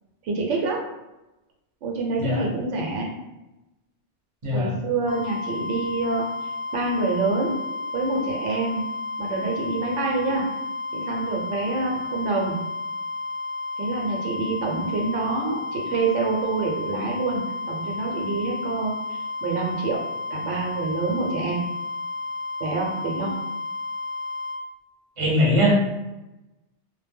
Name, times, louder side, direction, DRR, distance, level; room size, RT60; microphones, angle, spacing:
voice 1, 0.2-0.8 1.8-3.1 4.5-7.6 7.9-8.8 9.2-10.5 10.9-12.6 13.8-20.0 20.3-21.6 22.6-23.3, right 3 dB, 80° right, -1 dB, 0.9 m, -27 dB
voice 2, 4.4-4.8 25.2-25.7, equal, 30° right, -5 dB, 0.7 m, -21 dB
sound 1, 5.1-24.6, left 3 dB, 15° left, 0.5 m, -32 dB
2.1 x 2.1 x 3.3 m, 0.97 s
omnidirectional pair, 1.2 m